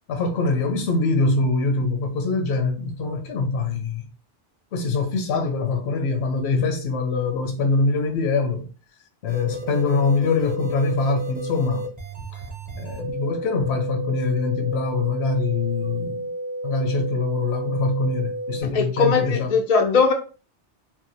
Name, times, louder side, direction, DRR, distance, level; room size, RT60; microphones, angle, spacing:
voice 1, 0.1-4.1 4.7-8.7 9.2-11.9 12.3-12.4 12.8-16.3 16.6-19.5, left 3 dB, 70° left, 0.9 m, -23 dB
sound 1, 9.3-18.6, right 1 dB, 10° right, 0.6 m, -32 dB
voice 2, 18.6-20.1, left 5 dB, 50° left, 0.5 m, -20 dB
2.6 x 2.2 x 2.6 m
omnidirectional pair, 1.1 m